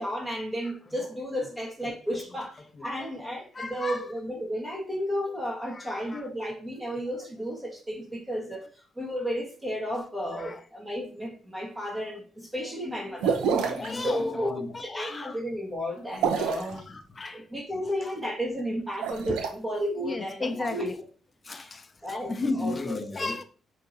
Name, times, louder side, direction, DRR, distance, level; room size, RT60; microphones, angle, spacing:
voice 1, 0.0-8.6 9.0-13.4 13.9-16.8 17.3-20.9 21.5-21.7 22.0-23.3, equal, 20° right, -3 dB, 1.4 m, -33 dB
voice 2, 3.0-3.3 3.5-4.0 5.7-5.8 6.1-6.2 10.4-10.6 13.5-15.4 16.3-17.4 18.0-18.1 20.0-21.0 21.5-21.8 22.1-23.4, left 3 dB, 35° left, 9 dB, 0.6 m, -34 dB
sound 1, 13.2-13.9 16.1-16.7 18.9-19.5, right 6 dB, 85° right, 0.6 m, -27 dB
5.2 x 2.8 x 2.6 m, 0.40 s
supercardioid pair, 55°, 0 cm